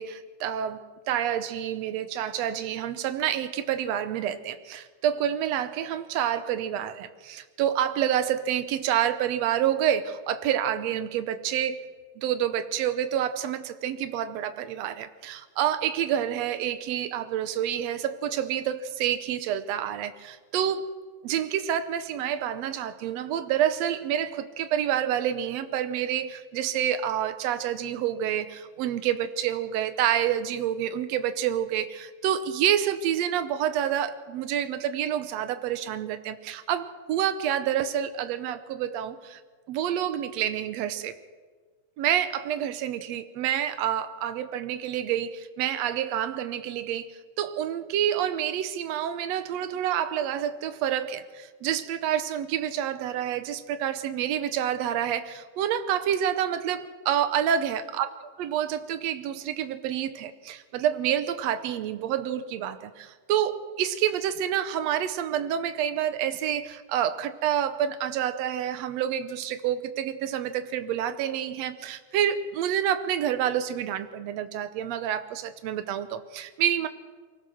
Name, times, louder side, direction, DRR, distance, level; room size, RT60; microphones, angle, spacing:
voice 1, 0.0-11.8 12.2-20.9 21.2-39.4 39.7-41.1 42.0-58.1 58.4-76.9, right 10 dB, 70° right, 10 dB, 1.7 m, -28 dB
23.5 x 17.5 x 6.3 m, 1.5 s
omnidirectional pair, 3.9 m